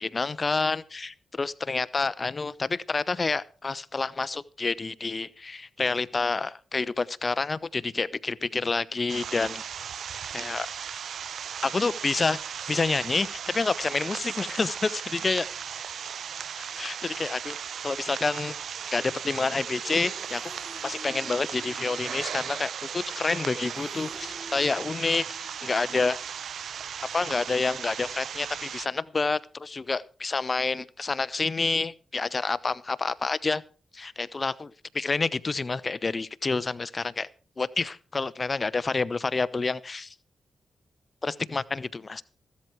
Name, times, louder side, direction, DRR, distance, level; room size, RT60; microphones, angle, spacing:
voice 1, 0.0-9.6 10.3-10.7 11.6-12.4 12.7-15.5 16.6-17.6 17.8-18.5 18.9-20.4 20.8-26.2 27.1-33.6 33.9-37.3 37.6-40.1 41.2-42.2, left 4 dB, 40° left, 18 dB, 0.9 m, -28 dB
sound 1, 9.1-28.9, right 8 dB, 75° right, 0.6 m, -37 dB
Motorcycle, 16.2-16.3 16.7-16.9 17.2-28.8, equal, 5° right, 5.3 m, -51 dB
15.5 x 13.0 x 4.7 m, 0.36 s
cardioid pair, 55°, 0 cm